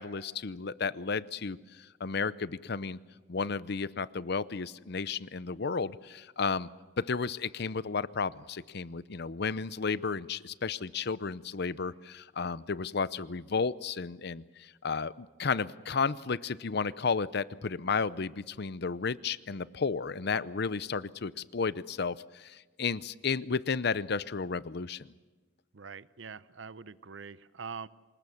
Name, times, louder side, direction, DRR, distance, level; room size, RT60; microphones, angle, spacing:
voice 1, 0.0-3.0 3.3-6.7 7.0-25.1, left 5 dB, 60° left, 17 dB, 0.7 m, -33 dB
voice 2, 25.7-27.9, right 5 dB, 75° right, 17 dB, 0.7 m, -44 dB
26.0 x 20.5 x 7.2 m, 1.3 s
head